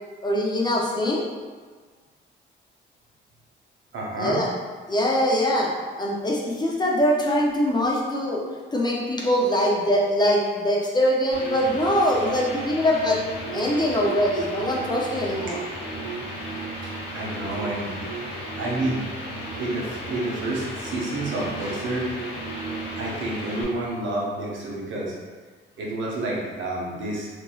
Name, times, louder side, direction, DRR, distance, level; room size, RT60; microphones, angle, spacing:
voice 1, 0.2-1.2 4.2-4.5 4.9-8.4 8.7-13.2 13.5-15.6, equal, 20° left, -3 dB, 0.5 m, -23 dB
voice 2, 3.9-4.4 15.9-16.0 16.8-18.1 18.6-19.0 19.6-22.1 23.0-25.1 25.8-27.3, right 2 dB, 70° right, -3 dB, 0.8 m, -29 dB
sound 1, 11.3-23.6, right 1 dB, 65° left, 1.1 m, -34 dB
2.9 x 2.6 x 2.3 m, 1.4 s
cardioid pair, 90°, 20 cm